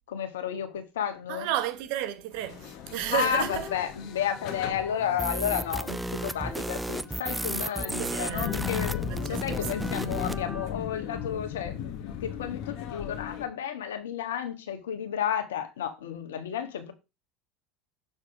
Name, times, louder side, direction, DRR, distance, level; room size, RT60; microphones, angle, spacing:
voice 1, 0.1-1.5 3.0-16.9, left 9 dB, 75° left, 1.4 m, -32 dB
voice 2, 1.3-3.7 8.0-8.7 9.1-10.1, right 12 dB, 65° right, 1.0 m, -33 dB
sound 1, 2.3-13.5, left 9 dB, 55° left, 1.2 m, -38 dB
sound 2, 3.1-10.7, left 2 dB, 20° left, 2.2 m, -44 dB
sound 3, 5.2-10.4, right 1 dB, 10° right, 0.4 m, -33 dB
6.7 x 4.1 x 5.0 m
hypercardioid pair, 75°, 0 cm